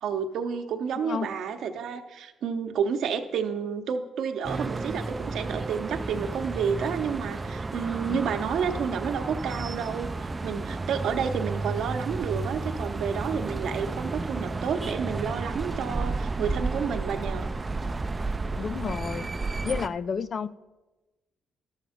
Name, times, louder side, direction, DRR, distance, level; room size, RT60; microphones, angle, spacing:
voice 1, 0.0-17.5, right 6 dB, 75° right, 7 dB, 0.9 m, -30 dB
voice 2, 1.0-1.3 8.0-8.2 18.6-19.3 19.6-20.5, left 6 dB, 50° left, 16 dB, 0.4 m, -31 dB
sound 1, 4.4-19.9, right 3 dB, 25° right, 0.4 m, -32 dB
12.0 x 7.2 x 5.1 m, 1.1 s
cardioid pair, 90°, 0 cm